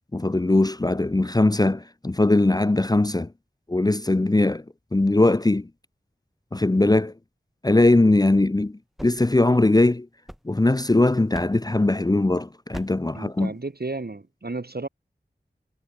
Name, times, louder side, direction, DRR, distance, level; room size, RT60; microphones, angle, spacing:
voice 1, 0.1-3.3 3.7-4.6 4.9-5.7 6.5-7.1 7.6-10.1 10.5-13.5, left 2 dB, 20° left, 0.6 m, -20 dB
sound 1, 8.7-10.9 11.3-11.8 12.7-13.2, equal, ahead, 5.2 m, -43 dB
voice 2, 13.1-14.9, right 3 dB, 60° right, 6.6 m, -33 dB
wide cardioid pair, 50°, 18 cm